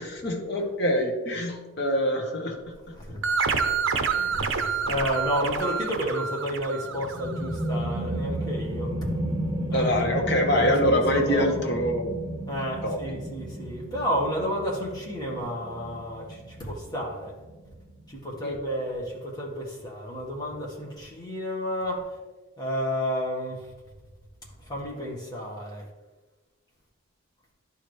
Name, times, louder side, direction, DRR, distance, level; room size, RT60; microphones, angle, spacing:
voice 1, 0.0-3.0 9.7-12.2 12.8-13.0 18.4-18.6, equal, 50° left, 2 dB, 1.2 m, -25 dB
sound 1, 3.2-7.6, right 5 dB, 70° right, 0.7 m, -28 dB
voice 2, 3.8-8.9 9.7-9.9 10.5-11.6 12.5-17.3 18.1-22.0 22.6-23.7 24.7-25.8, equal, 20° left, -3 dB, 1.5 m, -31 dB
sound 2, 6.8-18.2, right 1 dB, 20° right, 0.5 m, -33 dB
11.0 x 4.5 x 3.2 m, 1.2 s
head